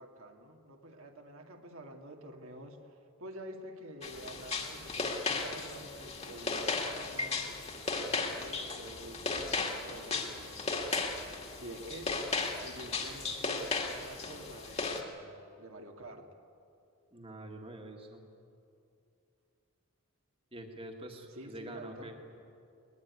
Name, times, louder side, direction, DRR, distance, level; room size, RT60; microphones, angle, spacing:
voice 1, 0.0-10.6 11.6-12.2 12.6-16.3 21.3-22.1, right 1 dB, 70° right, 3 dB, 2.1 m, -48 dB
sound 1, 4.0-15.0, left 3 dB, 30° left, 2.0 m, -36 dB
voice 2, 17.1-18.2 20.5-22.2, right 1 dB, 25° right, 3 dB, 1.9 m, -46 dB
21.0 x 20.5 x 9.6 m, 2.6 s
head